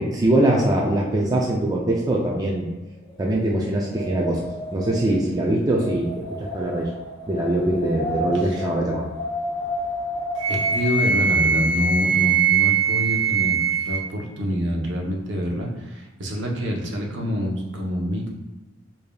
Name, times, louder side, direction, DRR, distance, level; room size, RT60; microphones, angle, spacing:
voice 1, 0.0-2.7 3.2-6.9 7.3-9.1, right 1 dB, 20° right, -2 dB, 0.3 m, -22 dB
Wind, 3.1-11.1, left 1 dB, 25° left, 0.6 m, -32 dB
voice 2, 8.3-8.7 10.5-18.3, equal, 65° right, 0 dB, 0.7 m, -27 dB
Wind instrument woodwind instrument, 10.4-14.0, right 6 dB, 85° right, 1.1 m, -21 dB
4.9 x 2.7 x 2.2 m, 1.2 s
head